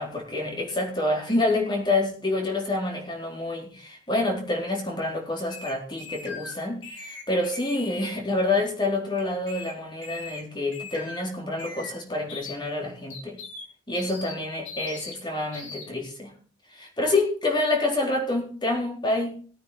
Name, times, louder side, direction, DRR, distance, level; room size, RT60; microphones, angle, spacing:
voice 1, 0.0-13.4 13.9-16.3 16.7-19.4, left 2 dB, 25° left, 0 dB, 4.1 m, -27 dB
sound 1, 5.5-6.5 6.8-8.1 9.2-9.7 10.0-10.4 10.7-11.2 11.6-11.9 12.3-12.6 13.1-13.6 13.9-14.3 14.6-15.1 15.5-15.8, left 4 dB, 75° left, 4.3 m, -40 dB
19.0 x 9.1 x 4.3 m, 0.42 s
head